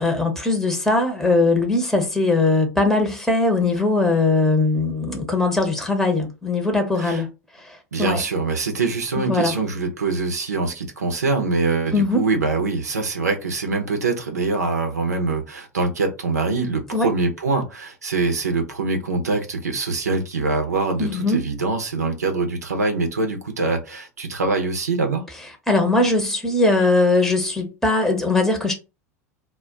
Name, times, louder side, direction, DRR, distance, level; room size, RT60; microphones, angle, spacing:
voice 1, 0.0-7.3 7.6-8.2 9.1-9.6 11.9-12.2 16.9-17.1 21.0-21.4 25.7-28.7, left 2 dB, 5° left, 0.8 m, -20 dB
voice 2, 7.9-25.2, right 3 dB, 85° right, 0.7 m, -24 dB
2.2 x 2.2 x 3.7 m
hypercardioid pair, 85°, 9 cm